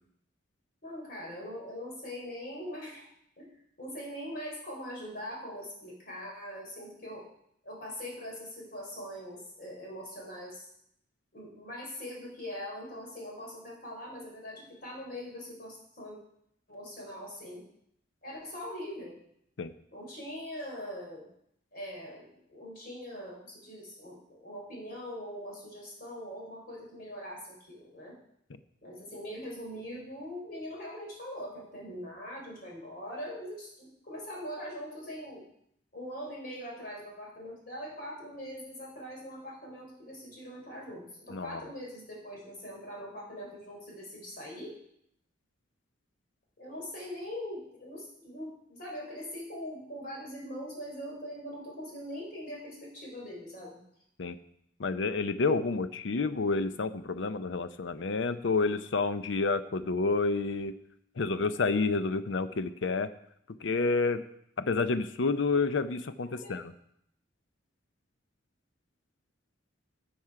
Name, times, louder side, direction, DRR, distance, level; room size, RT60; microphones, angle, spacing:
voice 1, 0.8-3.1 3.4-3.5 3.8-7.2 7.6-10.7 11.3-16.2 16.7-17.6 18.2-19.2 19.9-21.3 21.7-28.2 28.8-35.4 35.9-44.7 46.6-53.8 66.4-66.6, equal, 50° left, -3 dB, 4.1 m, -42 dB
voice 2, 41.3-41.6 54.2-54.4 54.8-60.7 61.2-63.1 63.6-64.2 64.6-66.7, left 3 dB, 70° left, 11 dB, 0.6 m, -29 dB
12.0 x 7.1 x 4.8 m, 0.73 s
head